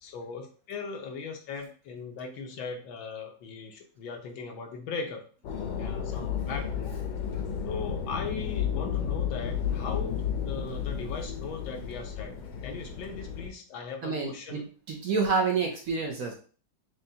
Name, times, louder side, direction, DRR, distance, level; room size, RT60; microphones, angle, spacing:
voice 1, 0.0-5.3 5.8-7.0 7.6-12.3 12.6-14.6, left 5 dB, 90° left, 3 dB, 1.6 m, -39 dB
sound 1, 5.4-13.5, left 7 dB, 70° left, 1.2 m, -32 dB
voice 2, 14.0-16.3, right 5 dB, 70° right, 1 dB, 0.8 m, -28 dB
6.5 x 2.2 x 2.7 m, 0.40 s
omnidirectional pair, 2.1 m